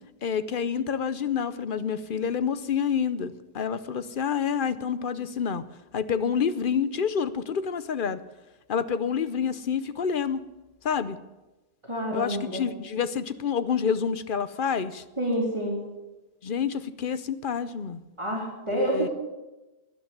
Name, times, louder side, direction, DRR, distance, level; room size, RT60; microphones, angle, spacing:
voice 1, 0.2-5.6 5.9-8.2 8.7-10.4 10.8-11.2 12.1-15.0 16.4-18.0 18.7-19.1, left 7 dB, 55° left, 14 dB, 0.8 m, -28 dB
voice 2, 11.9-12.7 15.2-15.8 18.2-19.1, right 1 dB, 25° right, -2 dB, 3.3 m, -28 dB
12.5 x 10.5 x 9.6 m, 1.1 s
omnidirectional pair, 1.2 m